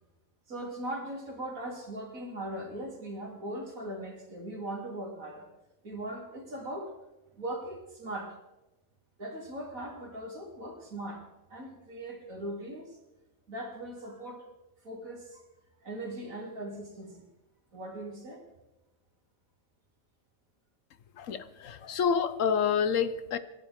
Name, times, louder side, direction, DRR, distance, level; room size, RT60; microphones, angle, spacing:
voice 1, 0.5-5.5 5.8-6.9 7.3-8.4 9.2-11.2 11.5-13.0 13.5-14.5 14.8-15.4 15.8-17.3 17.7-18.4, right 1 dB, 80° right, 0 dB, 3.5 m, -39 dB
voice 2, 21.2-23.4, left 7 dB, 70° left, 13 dB, 1.2 m, -28 dB
26.5 x 12.0 x 3.6 m, 1.0 s
omnidirectional pair, 1.4 m